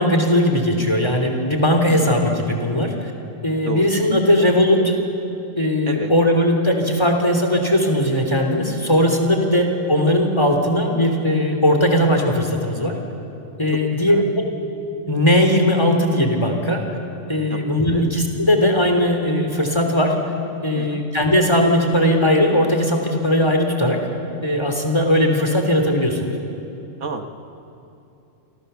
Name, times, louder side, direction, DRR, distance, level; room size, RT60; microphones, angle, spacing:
voice 1, 0.0-3.1 3.4-4.9 5.5-12.9 13.6-14.2 15.1-16.8 17.3-20.1 20.6-24.0 24.4-26.3, left 1 dB, 20° left, 3 dB, 3.3 m, -18 dB
voice 2, 3.6-4.1 5.9-6.1 9.5-9.6 13.7-13.8 14.1-14.2 17.5-18.1 20.7-21.0 27.0-27.3, right 3 dB, 65° right, 6 dB, 1.7 m, -30 dB
29.0 x 26.0 x 7.0 m, 2.8 s
omnidirectional pair, 1.4 m